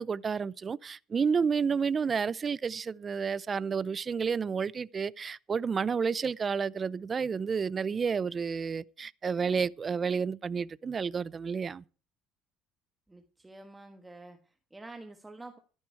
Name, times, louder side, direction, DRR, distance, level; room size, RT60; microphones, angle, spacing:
voice 1, 0.0-11.8, right 6 dB, 30° right, 0.5 m, -30 dB
voice 2, 13.1-15.6, right 2 dB, 10° right, 1.4 m, -48 dB
14.0 x 11.0 x 4.6 m
cardioid pair, 120°, 0 cm